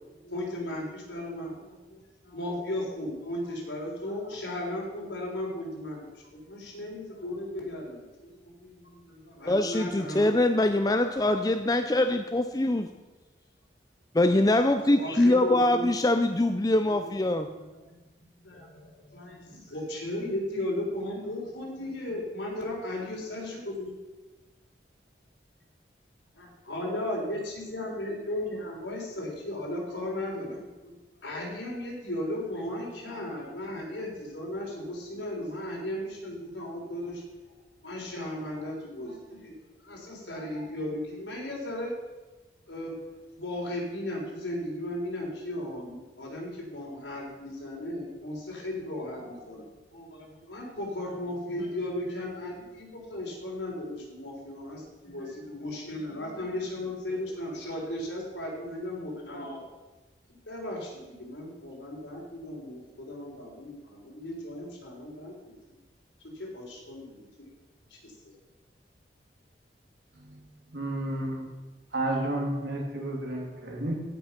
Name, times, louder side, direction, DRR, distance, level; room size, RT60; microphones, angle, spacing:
voice 1, 0.2-10.3 14.8-16.0 16.8-18.0 18.3-23.9 26.3-30.9 31.2-37.2 37.8-39.5 39.8-42.1 42.7-43.0 43.3-49.7 49.9-59.6 60.3-65.3 65.7-65.8 66.3-67.2 67.9-68.1, left 1 dB, 85° left, -2 dB, 3.9 m, -36 dB
voice 2, 9.5-12.9 14.1-17.5, left 1 dB, 20° left, 7 dB, 0.4 m, -23 dB
voice 3, 70.7-71.4 71.9-73.9, right 1 dB, 75° right, 0 dB, 2.8 m, -31 dB
16.0 x 6.1 x 5.9 m, 1.2 s
head